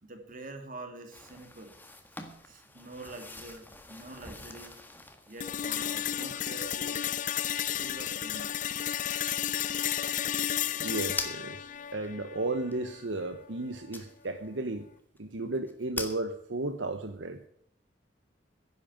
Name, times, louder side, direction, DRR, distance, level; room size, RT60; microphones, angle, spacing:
voice 1, 0.0-1.8 2.4-4.8 5.3-7.1 7.7-8.7, right 2 dB, 45° right, 5 dB, 2.5 m, -46 dB
sound 1, 1.1-12.1 12.7-12.8 13.9-14.4 14.8-14.9 15.2-15.3 15.5-16.2, left 2 dB, 10° left, 1.6 m, -44 dB
sound 2, 5.4-13.4, left 10 dB, 45° left, 0.5 m, -33 dB
voice 2, 10.7-14.9 15.2-17.4, right 2 dB, 75° right, 7 dB, 1.1 m, -34 dB
11.0 x 9.0 x 9.2 m, 0.70 s
head